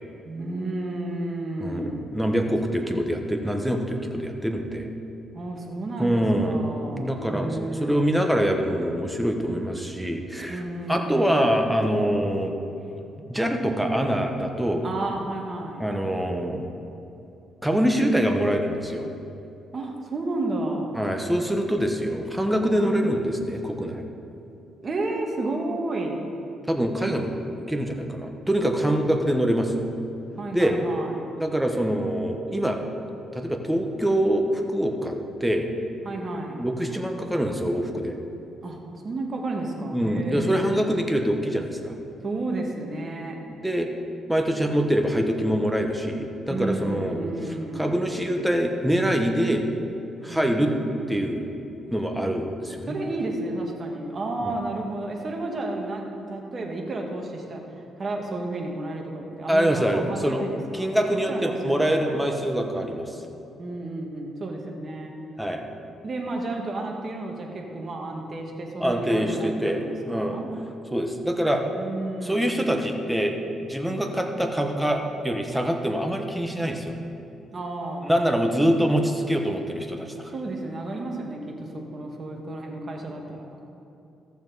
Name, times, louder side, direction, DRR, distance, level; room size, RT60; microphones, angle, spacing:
voice 1, 0.2-2.1 5.3-8.1 10.5-11.5 14.8-15.9 19.7-21.0 22.7-23.0 24.8-26.2 30.3-31.3 36.0-36.6 38.6-40.5 42.2-43.3 46.5-48.0 50.3-51.2 52.9-62.4 63.6-65.1 66.0-70.5 71.6-73.0 77.5-78.1 80.3-83.6, right 2 dB, 40° right, 1 dB, 1.6 m, -32 dB
voice 2, 1.6-4.9 6.0-6.6 6.9-7.5 7.8-10.6 10.9-12.5 13.3-14.9 15.8-16.6 17.6-19.1 21.0-24.0 26.7-27.4 27.7-29.9 30.5-30.8 31.4-32.8 33.3-35.7 36.5-38.2 39.9-41.9 43.5-43.9 44.3-47.2 47.7-49.6 50.2-50.7 51.1-51.5 51.9-52.9 54.4-54.5 59.5-60.4 60.7-63.2 65.4-65.6 68.8-69.8 70.1-70.4 70.9-71.6 72.2-73.4 73.7-77.0 78.0-80.3, equal, 5° right, 3 dB, 1.1 m, -24 dB
14.5 x 7.0 x 4.1 m, 2.8 s
cardioid pair, 90°, 0 cm